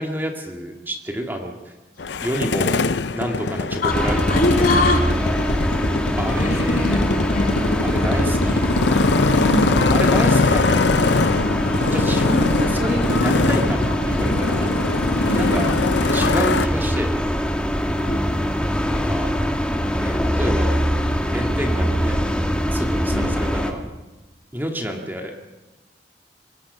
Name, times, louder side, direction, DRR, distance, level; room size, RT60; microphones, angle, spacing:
voice 1, 0.0-1.5 2.2-2.8 3.1-4.8 6.2-7.0 7.8-8.6 9.9-11.1 11.9-13.8 14.1-14.7 15.4-15.7 16.1-17.1 18.9-19.3 19.9-20.8 21.3-22.3 22.7-23.8 24.5-25.5, equal, 10° right, 2 dB, 2.1 m, -28 dB
Motorcycle, 2.0-16.7, left 3 dB, 85° left, 0.7 m, -22 dB
voice 2, 3.8-5.1 6.4-7.6 9.3-9.8 15.2-15.5 18.0-18.2 23.1-23.4, left 2 dB, 55° left, 2 dB, 3.0 m, -24 dB
sound 1, 3.9-23.7, equal, 5° left, 1.6 m, -22 dB
24.5 x 19.0 x 5.6 m, 1.1 s
head